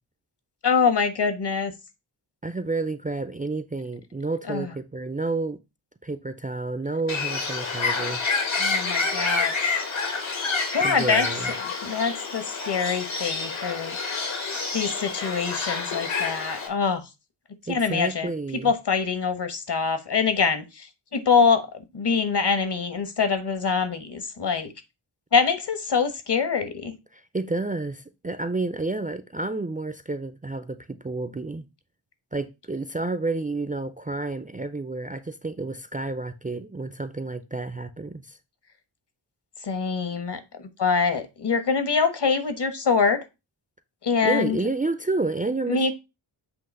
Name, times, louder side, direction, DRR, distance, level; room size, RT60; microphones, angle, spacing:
voice 1, 0.6-1.7 4.5-4.7 8.6-9.8 10.7-11.3 11.6-14.0 14.7-17.0 17.7-18.3 18.6-21.7 21.9-24.7 25.3-26.9 39.6-43.2 44.0-44.6 45.7-45.9, left 5 dB, 55° left, 1.3 m, -24 dB
voice 2, 2.4-5.6 6.0-8.2 10.8-11.5 17.7-18.7 27.1-31.7 32.3-38.4 44.2-45.9, right 3 dB, 15° right, 0.5 m, -30 dB
Bird, 7.1-16.7, left 4 dB, 70° left, 1.8 m, -28 dB
7.9 x 2.9 x 5.4 m
wide cardioid pair, 85°, 49 cm